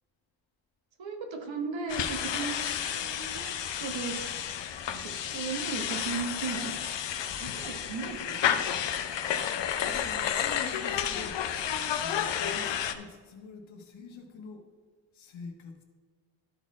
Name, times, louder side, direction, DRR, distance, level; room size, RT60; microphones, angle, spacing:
voice 1, 1.0-4.4 4.9-6.8 7.4-8.7, right 5 dB, 75° right, 4 dB, 1.4 m, -37 dB
sound 1, 1.9-12.9, left 9 dB, 70° left, 0.7 m, -31 dB
voice 2, 9.7-11.4 11.9-14.7 15.1-15.8, left 4 dB, 90° left, 3 dB, 1.4 m, -45 dB
12.5 x 4.3 x 4.2 m, 1.5 s
wide cardioid pair, 130°, 45 cm